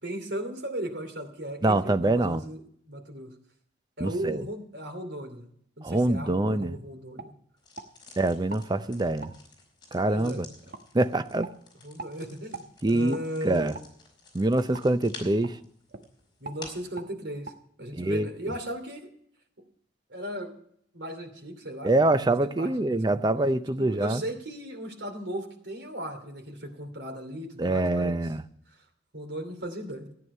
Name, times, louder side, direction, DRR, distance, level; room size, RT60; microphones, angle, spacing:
voice 1, 0.0-2.6 2.9-3.3 4.0-5.5 5.8-7.3 8.8-8.9 10.0-10.5 11.8-13.7 16.4-17.5 17.8-19.1 20.1-20.5 20.9-21.9 22.3-23.2 23.8-28.2 29.1-30.1, right 1 dB, 85° right, 2.7 m, -36 dB
voice 2, 1.6-2.4 4.0-4.4 5.8-6.8 8.2-9.3 9.9-10.5 10.9-11.5 12.8-13.7 14.3-15.6 17.9-18.3 21.8-24.2 27.6-28.4, right 2 dB, 25° right, 0.6 m, -25 dB
sound 1, 6.0-6.2 6.6-6.7 7.2-7.9 8.5-8.7 9.2-9.4 10.0-10.1 10.7-10.8 11.4-11.6 12.0-12.1 12.5-12.7 13.1-13.2 13.7-13.9 14.7-14.9 15.4-15.6 15.9-16.1 16.4-16.6 16.9-17.1 17.4-17.6, right 3 dB, 60° right, 1.2 m, -42 dB
sound 2, 7.6-16.9, left 3 dB, 25° left, 4.3 m, -51 dB
14.0 x 9.7 x 5.5 m
head